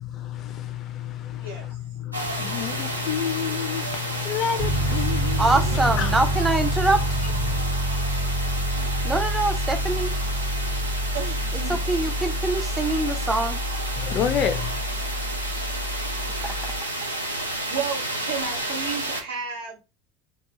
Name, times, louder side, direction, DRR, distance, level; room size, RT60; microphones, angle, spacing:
voice 1, 0.0-6.5 7.4-7.6 14.0-14.8, left 9 dB, 45° left, 0.5 m, -29 dB
sound 1, 2.1-19.2, right 1 dB, 90° right, 0.5 m, -31 dB
Piano, 4.6-16.8, right 1 dB, 45° right, 0.8 m, -27 dB
voice 2, 5.4-7.0 9.0-10.1 11.7-13.6 16.3-16.7, right 2 dB, 15° right, 0.5 m, -24 dB
voice 3, 11.1-11.8 17.7-19.8, right 6 dB, 75° right, 1.0 m, -33 dB
2.3 x 2.3 x 2.8 m
figure-of-eight pair, 70°, 0 cm